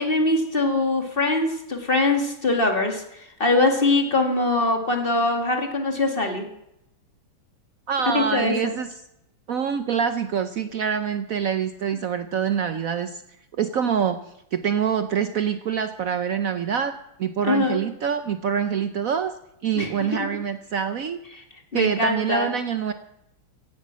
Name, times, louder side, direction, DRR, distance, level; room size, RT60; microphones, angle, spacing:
voice 1, 0.0-3.0 3.4-6.4 8.1-8.7 17.4-17.8 19.7-20.3 21.7-22.5, left 2 dB, 25° left, 4 dB, 2.1 m, -22 dB
voice 2, 7.9-8.9 9.5-13.2 13.6-14.2 14.5-19.3 19.6-21.2 21.7-22.9, right 7 dB, 90° right, 10 dB, 0.7 m, -25 dB
16.5 x 9.3 x 7.5 m, 0.81 s
omnidirectional pair, 2.4 m